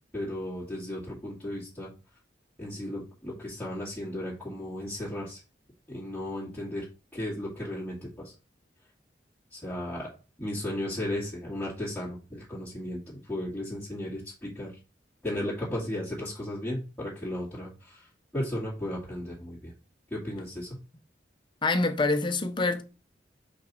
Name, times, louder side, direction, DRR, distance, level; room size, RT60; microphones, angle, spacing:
voice 1, 0.1-1.9 2.6-5.4 5.9-6.9 7.1-8.3 9.5-10.1 10.4-14.7 15.2-18.1 18.3-19.7 20.1-20.7, left 1 dB, 5° left, 2.2 m, -35 dB
voice 2, 21.6-22.8, left 3 dB, 25° left, 0.8 m, -25 dB
5.9 x 5.2 x 4.2 m
head